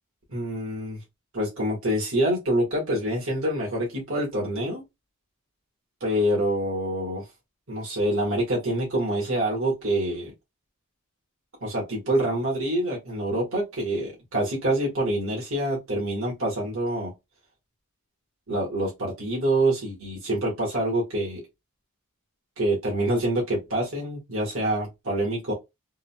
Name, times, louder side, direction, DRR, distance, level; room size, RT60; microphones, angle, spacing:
voice 1, 0.3-1.0 1.3-4.8 6.0-7.2 7.7-10.3 11.6-17.1 18.5-21.4 22.6-25.5, right 1 dB, 65° right, 1.7 m, -26 dB
3.7 x 2.5 x 2.2 m
head